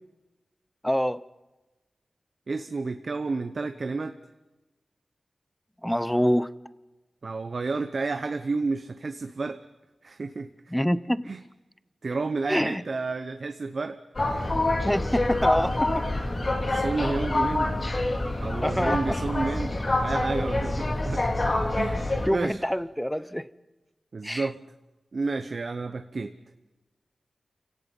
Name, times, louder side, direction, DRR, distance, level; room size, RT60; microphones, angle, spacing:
voice 1, 0.8-1.2 5.8-6.5 10.7-11.3 12.5-12.8 14.8-15.9 18.6-19.2 22.3-23.5 24.2-24.5, equal, 5° left, 16 dB, 0.7 m, -26 dB
voice 2, 2.5-4.2 7.2-9.6 10.0-10.5 11.3-11.4 12.0-14.0 14.4-14.5 16.7-17.8 18.4-21.2 21.7-22.6 24.1-24.6 25.1-26.3, right 3 dB, 60° right, 9 dB, 0.9 m, -31 dB
sound 1, 14.2-22.3, left 2 dB, 40° left, 2.6 m, -26 dB
29.0 x 17.5 x 5.4 m, 1.1 s
wide cardioid pair, 80°, 0 cm